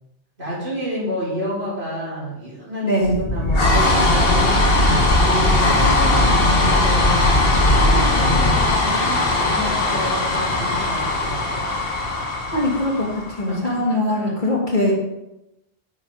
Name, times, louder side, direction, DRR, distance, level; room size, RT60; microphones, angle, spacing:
voice 1, 0.4-4.7 5.2-7.0 7.6-11.7 13.5-14.3, equal, 80° right, -7 dB, 4.6 m, -30 dB
voice 2, 2.8-3.2 12.5-14.9, left 1 dB, 50° left, -1 dB, 2.5 m, -21 dB
sound 1, 3.0-13.5, left 2 dB, 65° left, 1.7 m, -18 dB
8.7 x 8.6 x 4.8 m, 0.89 s
omnidirectional pair, 1.1 m